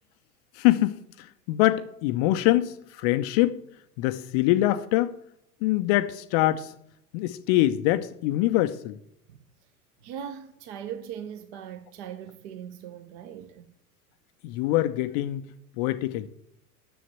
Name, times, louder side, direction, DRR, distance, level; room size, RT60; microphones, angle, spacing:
voice 1, 0.5-3.6 4.0-5.1 5.6-6.7 7.1-9.0 14.4-15.4 15.8-16.3, left 15 dB, 30° left, 0.4 m, -24 dB
voice 2, 10.0-13.7, right 9 dB, 45° right, 0.9 m, -39 dB
10.0 x 7.1 x 7.9 m
figure-of-eight pair, 85°, 46 cm